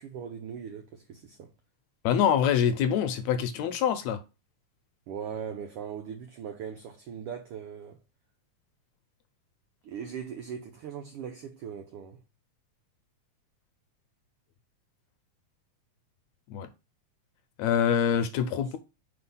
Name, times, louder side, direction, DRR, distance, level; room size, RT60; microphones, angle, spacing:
voice 1, 0.0-1.5 5.1-8.0 9.8-12.2, right 7 dB, 85° right, 1.2 m, -39 dB
voice 2, 2.0-4.2 16.5-16.7 17.6-18.8, left 8 dB, 75° left, 1.8 m, -25 dB
4.7 x 4.2 x 5.4 m
omnidirectional pair, 3.4 m